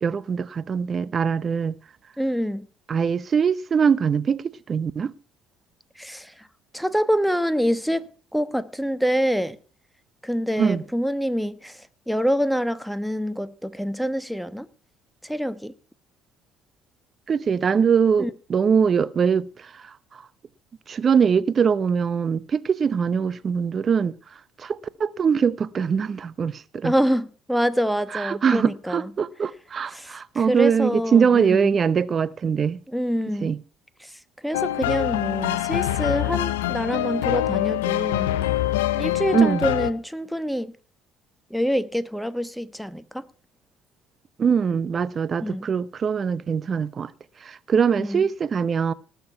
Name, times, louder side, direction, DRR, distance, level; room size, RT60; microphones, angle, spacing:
voice 1, 0.0-1.8 2.9-5.1 10.6-10.8 17.3-19.9 20.9-24.2 24.6-26.9 28.1-32.8 33.4-33.6 39.3-39.6 44.4-47.1 47.4-48.9, right 6 dB, 40° right, 0.8 m, -22 dB
voice 2, 2.2-2.7 6.0-6.5 6.7-8.1 8.3-9.6 10.2-14.7 15.2-15.7 18.2-18.3 26.8-29.1 29.9-31.8 32.9-33.5 34.0-34.1 34.4-38.3 38.9-40.7 41.5-43.2 45.4-45.7 48.0-48.2, equal, ahead, 1.1 m, -26 dB
sound 1, 34.5-39.9, left 14 dB, 85° left, 0.7 m, -24 dB
19.0 x 6.9 x 5.7 m
hypercardioid pair, 60°, 0 cm